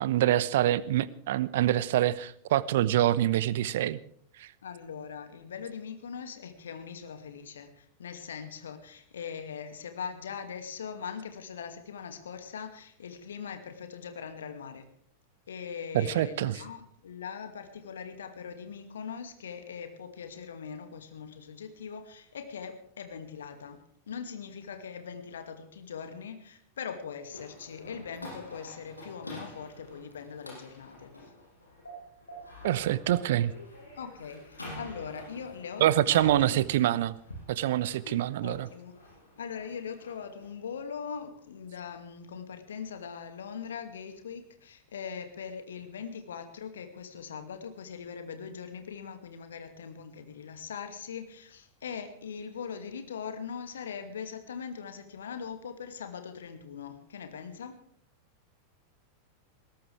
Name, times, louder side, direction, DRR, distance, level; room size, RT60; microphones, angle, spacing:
voice 1, 0.0-4.0 4.4-4.5 15.9-16.6 32.6-33.5 35.8-37.1 37.5-38.7, right 13 dB, 55° right, 19 dB, 0.8 m, -25 dB
voice 2, 4.6-14.9 15.5-31.3 34.0-36.7 38.0-38.9 39.4-57.8, left 6 dB, 65° left, 8 dB, 2.3 m, -41 dB
sound 1, 27.3-40.4, equal, 80° left, 6.7 m, -47 dB
20.5 x 17.5 x 3.5 m, 0.62 s
figure-of-eight pair, 90°, 0 cm